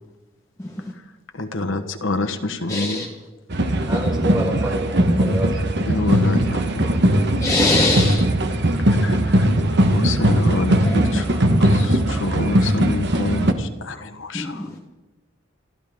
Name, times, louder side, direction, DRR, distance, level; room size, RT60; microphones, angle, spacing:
voice 1, 1.3-3.1 5.9-7.1 8.8-9.5 9.8-14.7, left 2 dB, 70° left, 6 dB, 1.2 m, -27 dB
voice 2, 2.7-3.1 7.4-8.2 10.8-11.0 14.3-14.8, left 2 dB, 15° left, 0 dB, 1.1 m, -21 dB
sound 1, 3.5-13.5, right 1 dB, 60° right, 1.3 m, -19 dB
voice 3, 3.9-5.9, right 1 dB, 20° right, -3 dB, 5.5 m, -28 dB
27.5 x 12.5 x 3.6 m, 1.2 s
head